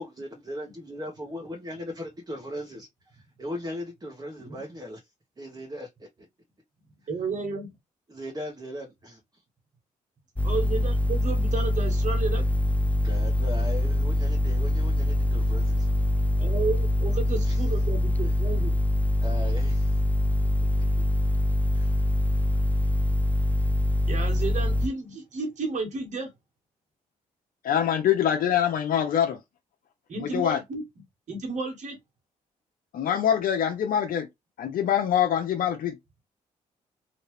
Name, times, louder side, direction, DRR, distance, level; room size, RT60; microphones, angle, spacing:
voice 1, 0.0-5.0 5.4-6.1 8.1-9.4 13.0-15.9 17.4-17.6 19.2-20.0 21.7-22.0, left 1 dB, 25° right, 1.2 m, -38 dB
voice 2, 7.1-7.7 10.4-12.4 16.4-18.7 24.1-26.3 30.1-30.8 31.3-32.0, right 4 dB, 50° right, 1.7 m, -32 dB
sound 1, 10.4-24.9, left 1 dB, 10° left, 0.4 m, -24 dB
voice 3, 27.6-29.4 30.2-30.6 32.9-34.3 34.6-36.0, left 9 dB, 70° left, 0.6 m, -24 dB
3.1 x 2.8 x 3.2 m
supercardioid pair, 60°, 15 cm